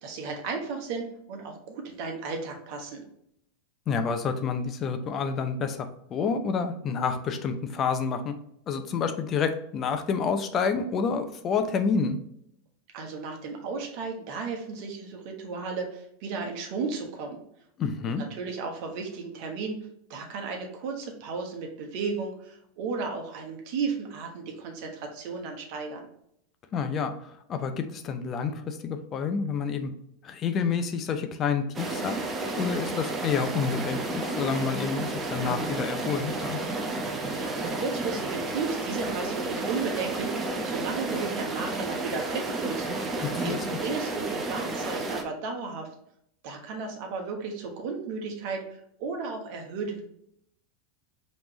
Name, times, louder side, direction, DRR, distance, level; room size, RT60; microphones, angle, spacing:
voice 1, 0.0-3.0 12.9-17.4 18.1-26.1 37.3-45.9 46.4-48.6 49.0-50.0, right 4 dB, 55° right, 3 dB, 1.1 m, -34 dB
voice 2, 3.9-8.3 8.7-12.2 17.8-18.2 26.7-29.9 30.2-36.6 43.2-43.6, left 5 dB, 35° left, 7 dB, 0.5 m, -29 dB
sound 1, 31.7-45.2, right 2 dB, 25° right, 0.8 m, -31 dB
5.1 x 3.2 x 2.9 m, 0.74 s
hypercardioid pair, 90°, 0 cm